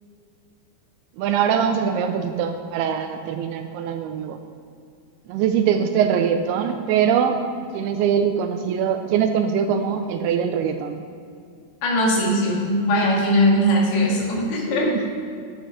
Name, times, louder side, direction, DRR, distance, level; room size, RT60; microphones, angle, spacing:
voice 1, 1.2-4.4 5.3-7.4 7.7-11.0 14.9-15.1, right 8 dB, 80° right, 7 dB, 2.4 m, -22 dB
voice 2, 11.8-14.9, equal, 70° left, -3 dB, 3.7 m, -20 dB
9.3 x 8.0 x 5.6 m, 2.4 s
omnidirectional pair, 4.7 m